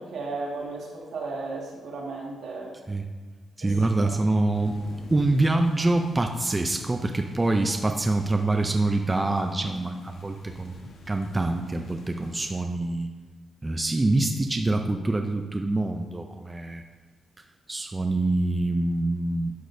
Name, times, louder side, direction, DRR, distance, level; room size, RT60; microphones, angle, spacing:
voice 1, 0.0-2.7 3.6-4.1, right 3 dB, 80° right, -3 dB, 2.0 m, -35 dB
voice 2, 3.6-4.8 5.1-10.7 11.1-13.1 13.6-16.8 17.7-19.5, right 2 dB, 20° right, 4 dB, 0.5 m, -25 dB
sound 1, 4.5-12.6, left 2 dB, 80° left, 1.2 m, -47 dB
11.5 x 6.2 x 2.7 m, 1.3 s
cardioid pair, 115°, 0 cm